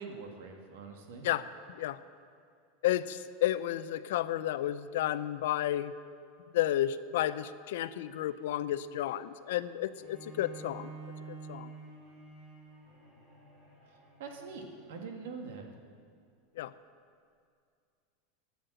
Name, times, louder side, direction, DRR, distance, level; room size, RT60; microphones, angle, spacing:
voice 1, 0.0-1.3 14.2-15.6, right 4 dB, 75° right, 3 dB, 1.9 m, -43 dB
voice 2, 2.8-5.9 6.5-10.9 11.3-11.7 16.6-16.7, left 13 dB, 75° left, 14 dB, 0.5 m, -32 dB
Bowed string instrument, 10.0-15.2, right 4 dB, 15° right, 3.9 m, -49 dB
11.5 x 9.4 x 8.1 m, 2.3 s
supercardioid pair, 160°, 0 cm